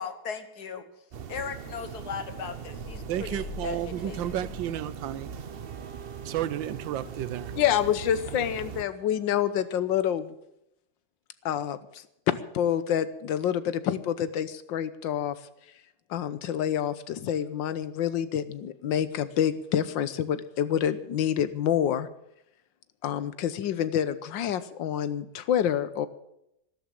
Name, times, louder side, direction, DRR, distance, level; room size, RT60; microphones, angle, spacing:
voice 1, 0.0-0.8 1.3-4.2, left 6 dB, 60° left, 10 dB, 1.8 m, -37 dB
sound 1, 1.1-8.8, right 7 dB, 60° right, 0.6 m, -40 dB
sound 2, 2.7-5.4, left 5 dB, 40° left, 1.5 m, -44 dB
voice 2, 3.1-5.3 6.2-7.6, right 12 dB, 90° right, 16 dB, 1.5 m, -32 dB
Wind instrument woodwind instrument, 5.4-10.6, right 8 dB, 35° right, 1.7 m, -50 dB
voice 3, 7.6-10.3 11.4-15.4 16.1-22.1 23.0-26.1, left 9 dB, 85° left, 14 dB, 1.6 m, -27 dB
13.0 x 12.5 x 7.6 m, 0.81 s
omnidirectional pair, 2.0 m